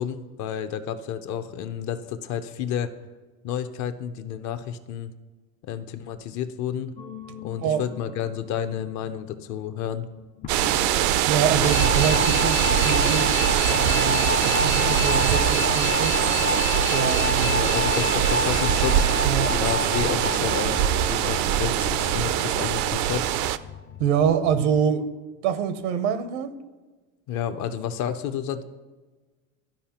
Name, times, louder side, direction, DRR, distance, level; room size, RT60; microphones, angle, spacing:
voice 1, 0.0-2.9 3.4-5.1 5.7-6.9 7.4-10.1 17.4-19.1 19.5-23.3 27.3-28.6, left 9 dB, 55° left, 10 dB, 0.8 m, -30 dB
sound 1, 7.0-24.8, left 6 dB, 25° left, 0.3 m, -30 dB
sound 2, 10.5-23.6, right 11 dB, 55° right, 0.4 m, -22 dB
voice 2, 11.3-13.3 13.7-16.2 16.9-17.6 19.2-19.5 24.0-25.1 25.4-26.6, right 7 dB, 80° right, 11 dB, 0.8 m, -25 dB
13.0 x 4.9 x 2.9 m, 1.3 s
supercardioid pair, 115°, 35 cm